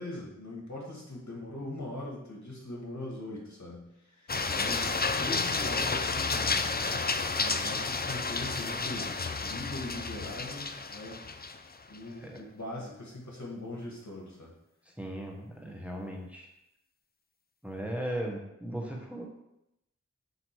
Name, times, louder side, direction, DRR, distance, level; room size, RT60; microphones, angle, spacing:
voice 1, 0.0-7.0 7.4-11.2 11.9-14.5, left 1 dB, 65° left, -3 dB, 1.9 m, -41 dB
sound 1, 4.3-12.0, left 4 dB, 30° left, 0.4 m, -31 dB
voice 2, 15.0-16.5 17.6-19.3, right 1 dB, 5° right, -1 dB, 1.1 m, -37 dB
7.8 x 2.9 x 4.7 m, 0.86 s
wide cardioid pair, 40°, 30 cm